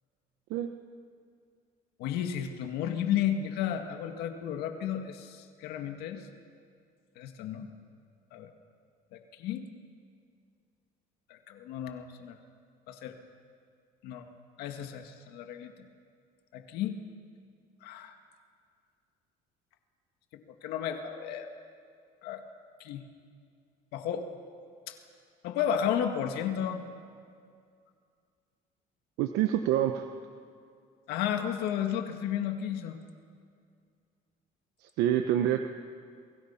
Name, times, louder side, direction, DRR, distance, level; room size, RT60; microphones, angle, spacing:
voice 1, 2.0-6.2 7.2-7.7 8.3-8.5 9.1-9.6 11.3-12.4 12.9-13.1 14.0-14.3 14.6-15.7 16.5-17.0 17.8-18.2 20.3-21.5 22.2-22.4 22.8-23.0 23.9-24.3 24.9-25.0 25.4-26.8 31.1-33.0, left 9 dB, 80° left, 6 dB, 1.9 m, -33 dB
voice 2, 29.2-30.1 34.8-35.7, right 11 dB, 85° right, 6 dB, 1.1 m, -27 dB
30.0 x 24.0 x 5.8 m, 2.2 s
cardioid pair, 125°, 16 cm